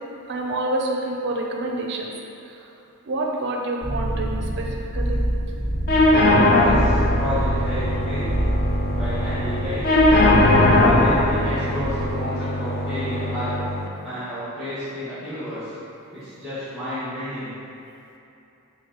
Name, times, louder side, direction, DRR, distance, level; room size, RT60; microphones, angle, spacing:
voice 1, 0.3-2.1 2.5-2.6 3.1-5.2, right 2 dB, 50° right, 0 dB, 0.5 m, -27 dB
sound 1, 3.8-12.3, equal, 70° left, 1.5 m, -26 dB
sound 2, 5.9-13.9, left 1 dB, 45° left, 0.3 m, -20 dB
voice 2, 6.3-8.4 8.9-9.8 10.8-13.5 14.0-15.7 16.1-17.5, equal, ahead, -16 dB, 1.2 m, -31 dB
5.6 x 2.5 x 2.9 m, 2.8 s
head